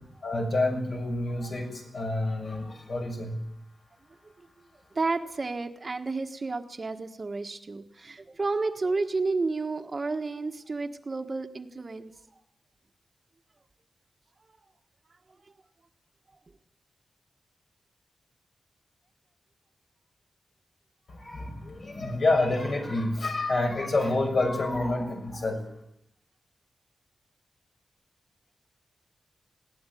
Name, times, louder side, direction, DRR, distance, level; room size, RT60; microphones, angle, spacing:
voice 1, 0.2-3.4 21.1-25.7, left 2 dB, 50° left, 2 dB, 6.4 m, -28 dB
voice 2, 4.9-12.1 15.4-15.5, right 3 dB, 35° right, 6 dB, 1.4 m, -31 dB
20.5 x 17.5 x 9.3 m, 0.81 s
wide cardioid pair, 115°, 0 cm